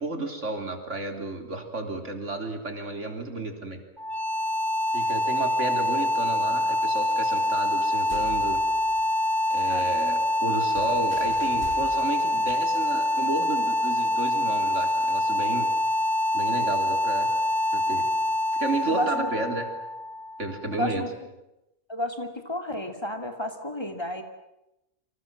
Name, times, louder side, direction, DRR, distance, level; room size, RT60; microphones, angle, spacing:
voice 1, 0.0-3.8 4.9-8.6 9.5-15.7 16.3-17.3 17.7-18.1 18.6-19.7 20.4-21.0, right 2 dB, 80° right, 4 dB, 4.0 m, -32 dB
sound 1, 4.0-20.9, left 1 dB, 20° right, 2.0 m, -25 dB
sound 2, 7.7-9.6 9.9-12.6, equal, 60° right, 7.6 m, -45 dB
voice 2, 18.9-19.3 20.7-21.1 21.9-24.2, equal, 20° left, 5 dB, 2.8 m, -31 dB
28.5 x 25.5 x 7.6 m, 0.91 s
omnidirectional pair, 1.2 m